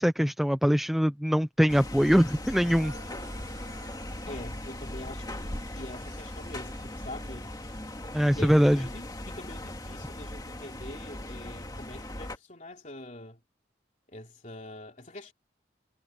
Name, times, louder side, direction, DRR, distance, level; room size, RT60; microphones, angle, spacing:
voice 1, 0.0-2.9 8.1-8.8, equal, ahead, 0.5 m, -23 dB
sound 1, 1.7-12.4, left 1 dB, 20° left, 2.1 m, -39 dB
sound 2, 2.6-8.2, right 4 dB, 85° right, 5.9 m, -54 dB
voice 2, 4.3-7.5 8.3-13.4 14.1-15.3, left 1 dB, 40° left, 3.5 m, -44 dB
head